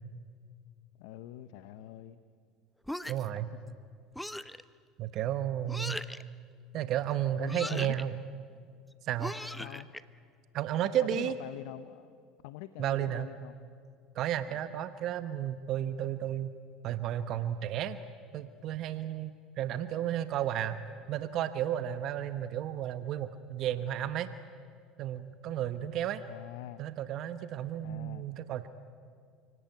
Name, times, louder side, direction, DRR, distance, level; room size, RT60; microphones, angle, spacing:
voice 1, 1.0-2.2 3.7-3.8 7.4-8.0 9.6-9.9 11.0-12.1 12.4-13.6 14.5-14.6 26.3-26.8 27.8-28.3, left 14 dB, 75° left, 12 dB, 0.9 m, -44 dB
sound 1, 2.9-3.4 4.2-4.6 5.7-6.2 7.5-8.0 9.2-10.0, left 1 dB, 5° left, 0.8 m, -39 dB
voice 2, 3.1-3.5 5.0-6.0 6.7-8.2 9.0-9.4 10.5-11.4 12.8-13.3 14.1-16.5 16.8-18.0 18.3-20.8 21.1-24.3 25.0-26.2 26.8-28.7, right 11 dB, 55° right, 11 dB, 1.0 m, -33 dB
29.0 x 18.0 x 9.4 m, 2.1 s
supercardioid pair, 90°, 0 cm